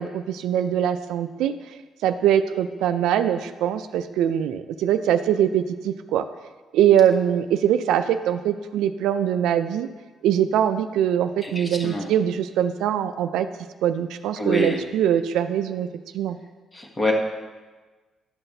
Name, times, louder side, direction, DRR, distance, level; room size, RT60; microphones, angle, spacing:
voice 1, 0.0-1.5 2.0-6.3 6.7-9.9 10.2-13.5 13.8-15.9 16.1-16.4, right 10 dB, 90° right, 9 dB, 0.3 m, -22 dB
voice 2, 11.4-12.1 14.4-14.8 16.7-17.1, left 2 dB, 25° left, 1 dB, 1.3 m, -26 dB
11.0 x 5.8 x 2.7 m, 1.3 s
cardioid pair, 90°, 0 cm